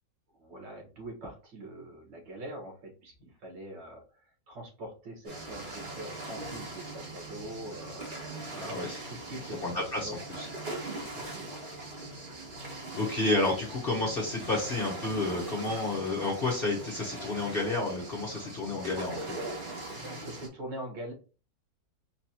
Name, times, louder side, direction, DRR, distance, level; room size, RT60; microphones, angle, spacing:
voice 1, 0.3-4.0 4.5-10.1 10.6-10.8 11.2-11.6 19.9-21.1, right 1 dB, 75° right, 0 dB, 2.1 m, -43 dB
sound 1, 5.3-20.5, right 2 dB, 30° right, 1.0 m, -41 dB
voice 2, 8.5-9.0 9.6-10.1 10.4-10.5 12.9-19.2, left 2 dB, 40° left, -3 dB, 0.9 m, -30 dB
4.5 x 2.9 x 2.9 m, 0.35 s
omnidirectional pair, 1.9 m